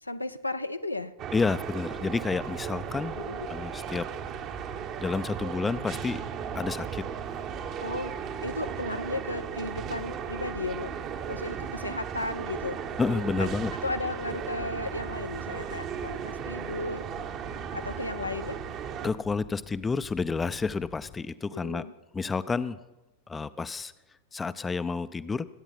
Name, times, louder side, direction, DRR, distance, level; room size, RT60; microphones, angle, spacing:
voice 1, 0.0-1.1 3.2-3.5 7.8-8.1 8.4-11.0 11.3-12.8 13.4-17.1 17.7-18.6 21.5-21.9, left 2 dB, 85° left, 10 dB, 0.6 m, -35 dB
sound 1, 1.2-19.1, right 8 dB, 35° right, 1.0 m, -36 dB
voice 2, 1.3-3.2 3.5-4.1 5.0-6.2 6.5-7.0 13.0-13.7 19.0-21.9 22.1-22.8 23.3-23.9 24.3-25.5, left 4 dB, 15° left, 14 dB, 0.5 m, -30 dB
sound 2, 1.8-21.2, left 10 dB, 35° left, 1.0 m, -49 dB
23.0 x 9.0 x 5.9 m, 1.0 s
figure-of-eight pair, 90°, 0 cm